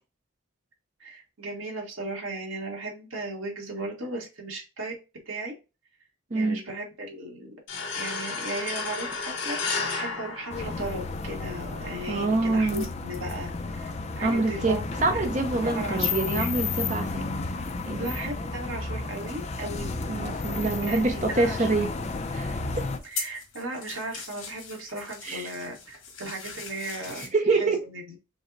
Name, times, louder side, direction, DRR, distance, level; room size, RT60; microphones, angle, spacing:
voice 1, 1.0-4.9 5.2-5.5 6.3-7.5 7.9-15.2 15.6-16.5 17.9-20.1 20.9-21.8 23.0-28.0, right 2 dB, 75° right, 1.3 m, -36 dB
sound 1, 7.7-11.3, left 4 dB, 60° left, 1.0 m, -32 dB
sound 2, 10.5-23.0, left 3 dB, 35° left, 0.4 m, -32 dB
voice 2, 12.1-12.9 14.2-17.2 17.9-18.1 20.1-21.9 22.3-22.6 25.2-25.5 27.2-27.8, right 3 dB, 35° right, 0.7 m, -26 dB
sound 3, 22.3-27.3, left 5 dB, 75° left, 1.7 m, -40 dB
5.2 x 2.1 x 3.9 m
head